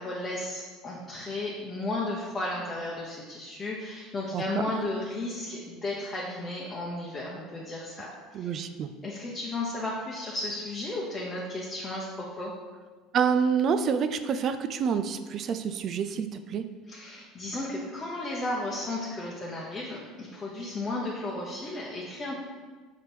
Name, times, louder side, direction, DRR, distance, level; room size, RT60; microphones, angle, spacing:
voice 1, 0.0-8.5 9.0-12.5 16.9-22.3, left 2 dB, 15° left, -5 dB, 0.9 m, -34 dB
voice 2, 8.3-8.9 13.1-16.6, right 6 dB, 35° right, 10 dB, 0.4 m, -27 dB
6.8 x 5.0 x 4.5 m, 1.4 s
cardioid pair, 165°, 0 cm